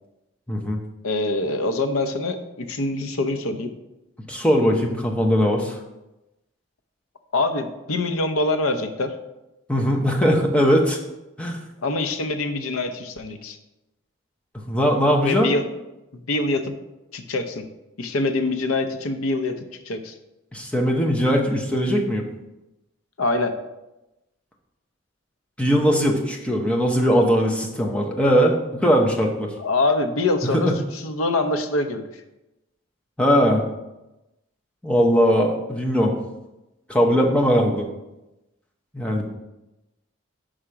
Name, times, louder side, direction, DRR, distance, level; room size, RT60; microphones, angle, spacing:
voice 1, 0.5-0.8 4.3-5.8 9.7-11.0 11.4-11.6 14.7-15.5 20.5-22.2 25.6-29.5 30.4-30.8 33.2-33.6 34.8-36.1 36.9-37.9 38.9-39.3, equal, 5° left, 0 dB, 0.7 m, -20 dB
voice 2, 1.0-3.7 7.3-9.1 11.8-13.6 15.2-15.6 16.1-16.8 17.1-17.6 18.0-19.6 19.9-20.1 23.2-23.5 29.6-32.0, left 2 dB, 85° left, 8 dB, 0.7 m, -24 dB
5.0 x 4.9 x 5.6 m, 0.97 s
head